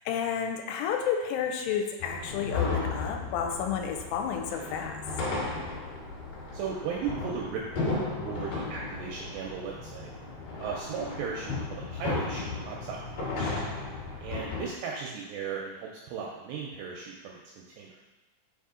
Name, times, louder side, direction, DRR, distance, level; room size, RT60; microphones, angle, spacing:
voice 1, 0.0-5.0, left 7 dB, 85° left, 4 dB, 2.9 m, -31 dB
sound 1, 2.0-14.7, left 3 dB, 65° left, 2.2 m, -35 dB
voice 2, 6.5-10.1 10.6-13.5 14.2-17.9, right 6 dB, 85° right, -2 dB, 2.4 m, -36 dB
6.5 x 4.0 x 3.7 m, 1.1 s
omnidirectional pair, 5.5 m